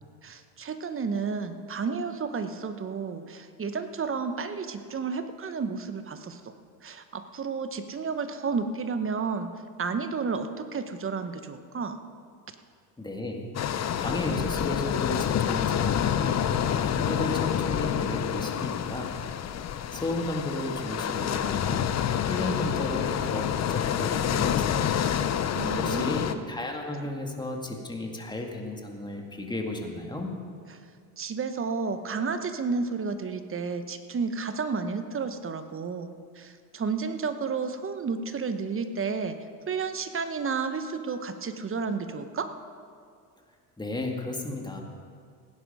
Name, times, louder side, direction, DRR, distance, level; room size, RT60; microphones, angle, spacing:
voice 1, 0.2-6.4 6.8-9.5 9.8-12.0 25.5-26.4 31.2-39.4 39.7-42.5, right 5 dB, 30° right, 9 dB, 1.0 m, -31 dB
voice 2, 13.0-13.5 14.0-19.2 19.9-21.9 22.3-25.0 25.8-30.3 43.8-44.8, left 1 dB, 10° left, 1 dB, 2.0 m, -34 dB
sound 1, 13.5-26.3, left 9 dB, 35° left, 0.7 m, -28 dB
17.0 x 10.0 x 5.4 m, 2.2 s
supercardioid pair, 95°, 46 cm